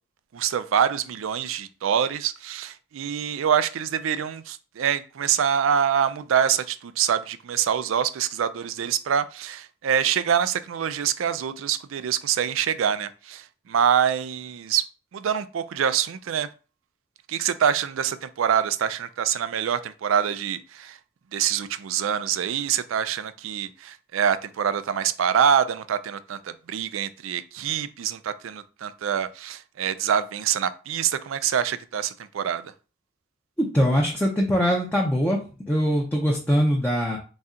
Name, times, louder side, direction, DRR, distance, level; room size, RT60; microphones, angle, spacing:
voice 1, 0.3-14.8 15.1-16.5 17.3-21.0 21.3-32.7, right 8 dB, 70° right, 0.4 m, -25 dB
voice 2, 33.6-35.4 35.7-37.2, equal, 10° left, 0.6 m, -22 dB
4.1 x 2.3 x 3.7 m
head